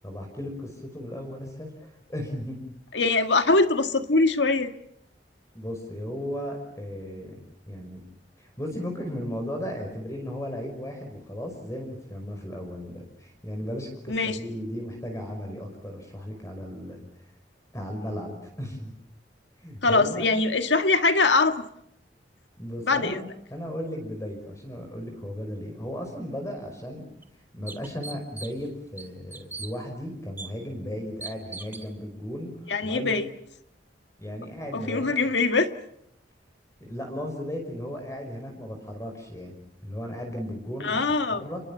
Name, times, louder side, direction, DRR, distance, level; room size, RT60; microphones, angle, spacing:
voice 1, 0.0-2.6 5.5-7.4 7.7-8.0 8.4-17.3 17.7-18.9 19.6-20.3 22.6-23.2 23.5-27.0 27.5-32.5 32.8-33.2 34.2-35.1 36.8-41.0 41.3-41.6, equal, 15° left, 3 dB, 5.4 m, -35 dB
voice 2, 2.9-4.7 14.1-14.4 19.8-21.6 22.8-23.2 32.7-33.2 34.7-35.7 40.8-41.5, left 3 dB, 90° left, 8 dB, 1.8 m, -22 dB
sound 1, 26.6-26.7 27.2-27.3 27.7-28.7 29.0-29.7 30.4-30.5 31.2-31.9, right 3 dB, 10° right, 2.4 m, -39 dB
29.5 x 23.0 x 7.2 m, 0.74 s
head